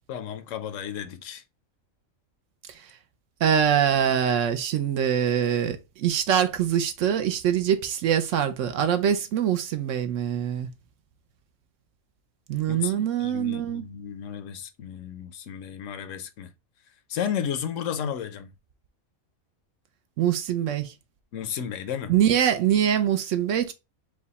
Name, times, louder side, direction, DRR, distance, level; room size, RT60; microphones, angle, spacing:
voice 1, 0.1-1.4 12.6-16.5 17.1-18.5 21.3-22.1, left 8 dB, 70° left, 0.9 m, -33 dB
voice 2, 3.4-10.7 12.5-13.9 20.2-20.9 22.1-23.7, right 9 dB, 70° right, 0.9 m, -24 dB
4.8 x 2.2 x 4.0 m
omnidirectional pair, 1.4 m